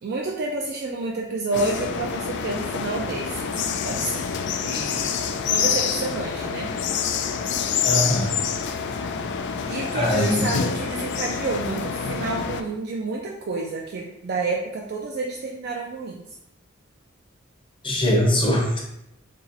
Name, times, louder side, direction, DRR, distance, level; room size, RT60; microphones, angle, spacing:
voice 1, 0.0-6.7 9.7-16.2, right 3 dB, 50° right, -1 dB, 0.4 m, -29 dB
sound 1, 1.5-12.6, left 6 dB, 55° left, 0.3 m, -27 dB
voice 2, 7.9-8.3 9.9-10.5 17.8-18.8, left 1 dB, 25° left, -1 dB, 0.7 m, -21 dB
2.9 x 2.8 x 3.9 m, 0.86 s
head